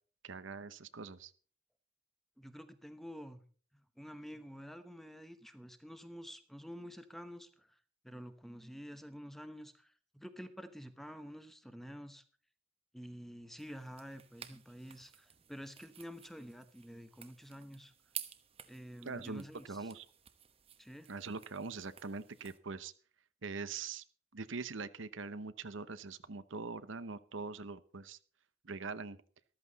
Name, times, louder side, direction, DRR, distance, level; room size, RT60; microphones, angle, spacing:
voice 1, 0.2-1.3 19.0-20.0 21.1-22.9 23.4-24.0 24.3-28.2 28.6-29.2, right 4 dB, 70° right, 13 dB, 0.9 m, -43 dB
voice 2, 2.4-3.4 3.7-12.2 12.9-17.9 18.7-19.9 20.8-21.1, equal, ahead, 10 dB, 1.0 m, -49 dB
sound 1, 13.6-22.6, right 10 dB, 30° right, 1.1 m, -52 dB
14.0 x 13.5 x 4.1 m, 0.42 s
head